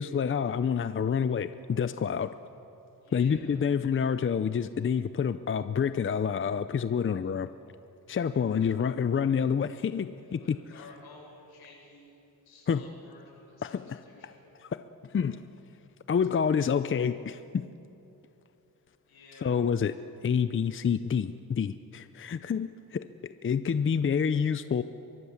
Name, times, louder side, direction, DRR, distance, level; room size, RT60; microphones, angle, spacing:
voice 1, 0.0-2.3 3.1-7.5 8.1-10.6 12.7-12.8 13.6-13.7 14.6-14.8 15.1-15.4 16.1-17.6 19.4-19.9 20.2-23.1 23.4-24.8, left 7 dB, 35° left, 12 dB, 0.6 m, -28 dB
voice 2, 3.0-3.6 8.3-8.7 10.1-12.2 12.4-14.5 16.1-16.6 19.1-19.6, left 3 dB, 85° left, -2 dB, 7.9 m, -53 dB
23.5 x 23.0 x 7.3 m, 2.9 s
cardioid pair, 95°, 37 cm